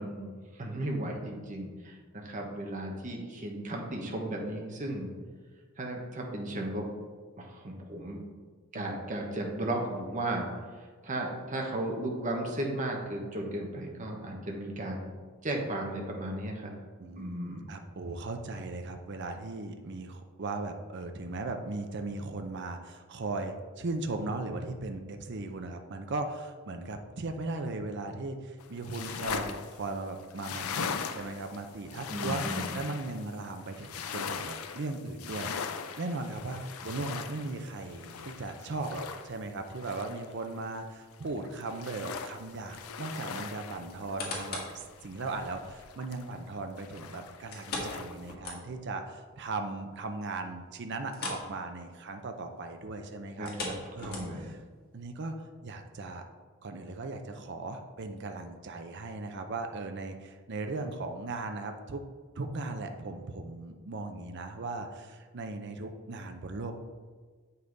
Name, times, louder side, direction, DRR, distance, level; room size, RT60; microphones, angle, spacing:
voice 1, 0.0-5.1 5.8-6.9 7.4-8.2 8.7-10.5 11.0-15.0 15.4-16.7 17.2-17.6 32.1-32.7 53.4-53.7 54.0-54.5, right 1 dB, 35° right, 0 dB, 1.1 m, -35 dB
voice 2, 17.0-53.5 54.0-54.6 54.9-56.2 56.6-62.0 62.4-66.7, right 3 dB, 55° right, 5 dB, 0.6 m, -38 dB
sound 1, 28.6-40.8 41.1-46.5 46.8-48.3, left 6 dB, 90° left, 0.5 m, -40 dB
sound 2, 43.9-44.8 45.3-45.4 47.5-49.0 49.3-49.4 49.8-49.9 51.1-51.5 51.8-52.0 53.3-54.6 55.2-55.3, left 2 dB, 45° left, 1.7 m, -38 dB
7.8 x 5.5 x 3.9 m, 1.5 s
head